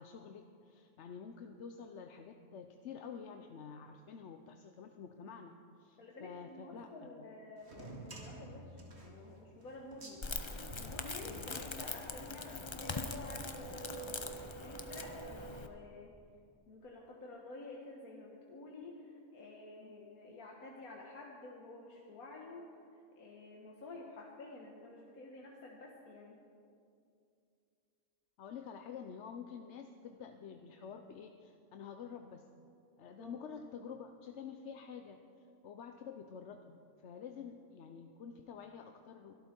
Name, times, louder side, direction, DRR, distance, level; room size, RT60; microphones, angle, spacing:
voice 1, 0.0-7.1 11.2-11.5 19.8-20.0 28.4-32.5 33.0-35.2 35.6-36.8 37.0-39.3, left 6 dB, 60° left, 6 dB, 0.9 m, -49 dB
voice 2, 6.0-10.2 10.8-16.1 16.7-22.8 23.1-26.4 33.2-33.4, left 2 dB, 80° left, -2 dB, 1.9 m, -50 dB
sound 1, 7.6-12.2, right 1 dB, 50° right, 2.3 m, -51 dB
Crackle, 10.2-15.7, left 2 dB, 25° left, 0.6 m, -42 dB
23.5 x 13.0 x 4.5 m, 2.4 s
omnidirectional pair, 1.5 m